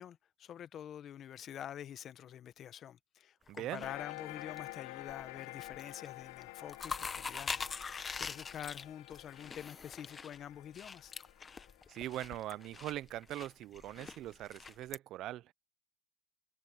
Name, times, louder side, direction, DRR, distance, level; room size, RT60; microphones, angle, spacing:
voice 1, 0.0-7.5 7.8-11.1, left 10 dB, 35° left, 1.0 m, -47 dB
sound 1, 3.5-4.6 5.0-5.4 5.7-6.1 6.4-15.0, left 5 dB, 20° left, 1.3 m, -43 dB
voice 2, 3.5-3.9 11.9-15.5, right 14 dB, 45° right, 0.6 m, -41 dB
sound 2, 3.8-12.8, left 22 dB, 65° left, 0.9 m, -50 dB
supercardioid pair, 120°, 0 cm